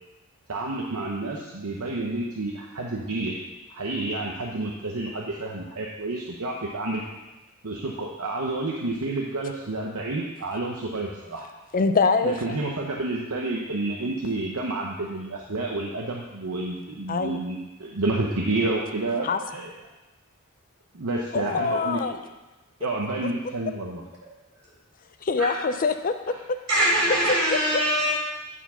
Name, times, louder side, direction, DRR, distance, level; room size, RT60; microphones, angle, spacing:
voice 1, 0.5-3.4 3.7-7.0 7.6-11.5 12.2-19.7 20.9-22.0 22.8-24.0 26.3-26.4, right 2 dB, 70° right, -1 dB, 0.9 m, -29 dB
voice 2, 11.7-12.6 17.1-17.4 19.2-19.4 21.3-22.2 25.2-26.1 27.1-27.6 28.0-28.1, left 4 dB, 40° left, 9 dB, 0.5 m, -24 dB
voice 3, 26.7-28.1, right 1 dB, 90° right, -4 dB, 3.5 m, -22 dB
10.0 x 4.7 x 5.6 m, 1.1 s
head